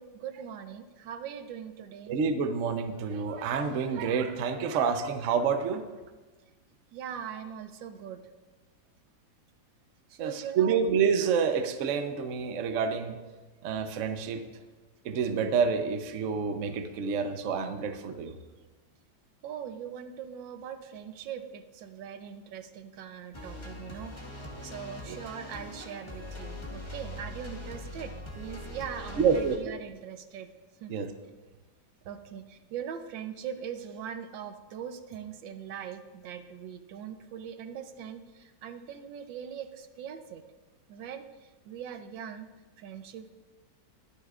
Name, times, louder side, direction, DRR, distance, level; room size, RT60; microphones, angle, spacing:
voice 1, 0.0-2.1 6.9-8.2 10.1-10.8 19.4-30.5 30.8-30.9 32.0-40.4 40.9-41.2 41.7-42.5 42.8-43.3, right 8 dB, 85° right, 8 dB, 1.5 m, -41 dB
voice 2, 2.1-5.8 10.2-13.2 13.6-14.4 15.0-18.3 25.1-25.2 29.2-29.6 30.9-31.1, right 6 dB, 55° right, 8 dB, 0.9 m, -28 dB
sound 1, 23.3-29.6, left 1 dB, 15° left, 1.2 m, -41 dB
21.5 x 9.7 x 2.4 m, 1.3 s
omnidirectional pair, 2.0 m